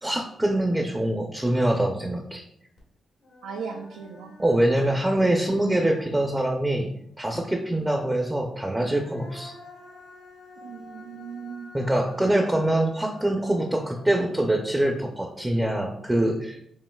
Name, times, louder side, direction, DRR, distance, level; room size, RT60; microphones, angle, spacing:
voice 1, 0.0-2.4 4.4-6.9 7.2-9.5 11.7-16.6, right 1 dB, 15° right, 3 dB, 0.5 m, -24 dB
Human voice, 2.8-2.9 3.2-6.9 8.5-15.8, left 2 dB, 80° left, 1.4 m, -49 dB
voice 2, 3.4-4.4 4.7-5.0 6.1-6.2 7.8-7.9 10.6-11.8, right 6 dB, 90° right, 2 dB, 0.3 m, -38 dB
5.2 x 2.7 x 2.3 m, 0.72 s
cardioid pair, 65°, 0 cm